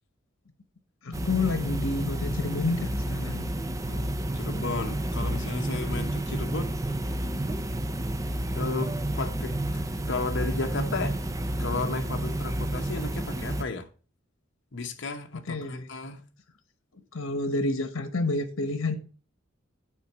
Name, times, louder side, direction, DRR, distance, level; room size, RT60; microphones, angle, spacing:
voice 1, 1.0-3.5 15.5-15.9 17.1-19.0, left 3 dB, 85° left, 1.1 m, -29 dB
sound 1, 1.1-13.6, right 1 dB, 15° right, 0.6 m, -30 dB
voice 2, 3.8-6.7 8.5-9.6 10.1-11.2 11.6-13.9 14.7-16.3, left 3 dB, 60° left, 1.0 m, -33 dB
9.2 x 4.2 x 6.8 m
head